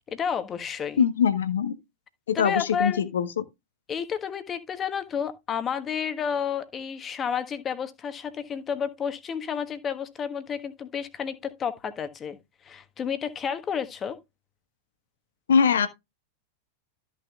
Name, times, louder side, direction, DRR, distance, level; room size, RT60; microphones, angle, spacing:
voice 1, 0.1-1.0 2.3-3.0 3.9-12.4 12.6-14.2, left 7 dB, 25° left, 1.3 m, -31 dB
voice 2, 1.0-1.7 2.3-3.3 15.5-15.9, left 7 dB, 65° left, 1.1 m, -22 dB
13.5 x 6.4 x 2.3 m
figure-of-eight pair, 90°, 0 cm